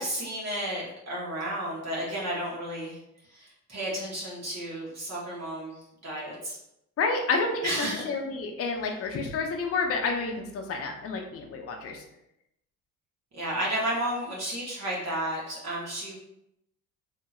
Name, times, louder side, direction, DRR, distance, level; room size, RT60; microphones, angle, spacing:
voice 1, 0.0-3.0 3.3-6.6 7.6-8.0 13.3-16.1, right 1 dB, 40° right, -6 dB, 1.1 m, -32 dB
voice 2, 7.0-12.0, left 4 dB, 35° left, 2 dB, 0.6 m, -29 dB
2.8 x 2.7 x 2.3 m, 0.83 s
supercardioid pair, 80°, 39 cm